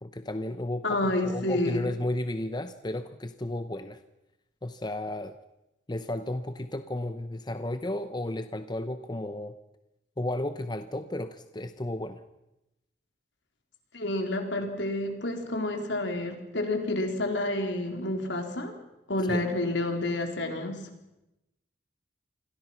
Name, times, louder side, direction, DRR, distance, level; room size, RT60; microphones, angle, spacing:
voice 1, 0.0-4.0 4.6-5.4 5.9-9.6 10.2-12.2 19.3-19.5, left 1 dB, 20° left, 10 dB, 0.8 m, -33 dB
voice 2, 0.8-1.9 13.9-18.7 19.1-20.8, left 1 dB, 70° left, 4 dB, 4.1 m, -29 dB
28.5 x 22.0 x 6.0 m, 0.92 s
head